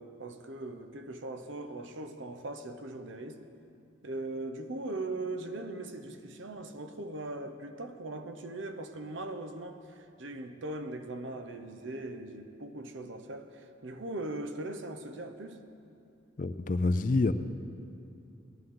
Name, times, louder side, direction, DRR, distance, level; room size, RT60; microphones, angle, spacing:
voice 1, 0.0-3.4 4.0-15.6, right 2 dB, 70° right, 7 dB, 0.9 m, -40 dB
voice 2, 16.4-17.3, left 3 dB, 40° left, 11 dB, 0.4 m, -27 dB
19.0 x 11.0 x 3.8 m, 2.6 s
head